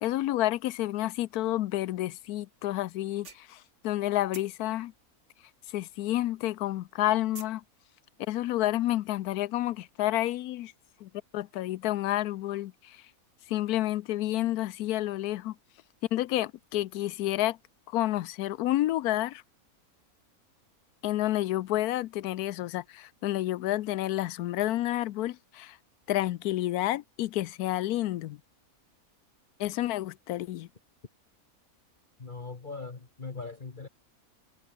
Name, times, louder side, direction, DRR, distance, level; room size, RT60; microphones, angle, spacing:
voice 1, 0.0-3.6 3.8-4.9 5.7-7.6 8.3-10.7 11.0-13.0 13.5-15.5 16.1-17.6 17.9-19.4 21.0-25.8 26.1-28.4 29.6-30.7, left 14 dB, 80° left, 1.1 m, -29 dB
sound 1, 2.5-2.6 3.0-4.0 4.3-6.2 6.4-7.6, right 4 dB, 50° right, 2.6 m, -48 dB
voice 2, 32.2-33.9, left 4 dB, 35° left, 1.6 m, -40 dB
omnidirectional pair, 1.6 m